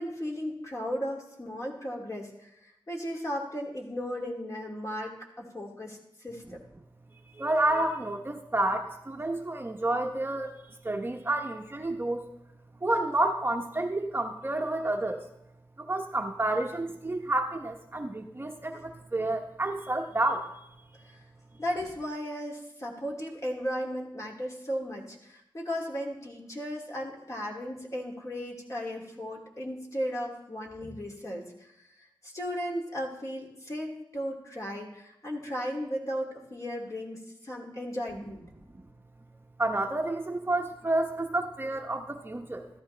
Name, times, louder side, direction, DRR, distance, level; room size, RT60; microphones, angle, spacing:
voice 1, 0.0-2.5 2.9-6.6 21.6-31.7 32.2-38.4, equal, 40° left, -1 dB, 2.7 m, -35 dB
voice 2, 7.3-12.3 12.8-15.2 15.8-20.5 38.7-38.8 39.6-42.7, right 2 dB, 25° right, 4 dB, 0.9 m, -30 dB
13.5 x 12.5 x 3.3 m, 0.83 s
wide cardioid pair, 70°, 9 cm